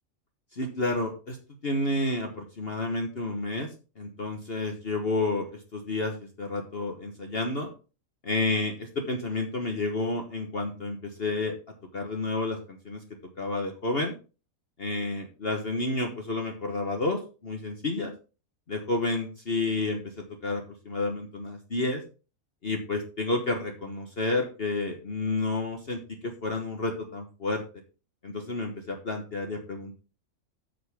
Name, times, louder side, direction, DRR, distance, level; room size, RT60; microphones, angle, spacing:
voice 1, 0.5-1.4 1.6-3.7 4.0-7.7 8.2-11.5 11.9-13.0 13.4-14.1 14.8-18.1 18.7-20.0 20.4-22.0 22.6-27.6 28.2-30.0, left 2 dB, 45° left, 3 dB, 1.4 m, -30 dB
9.5 x 6.5 x 3.5 m, 0.34 s
omnidirectional pair, 1.5 m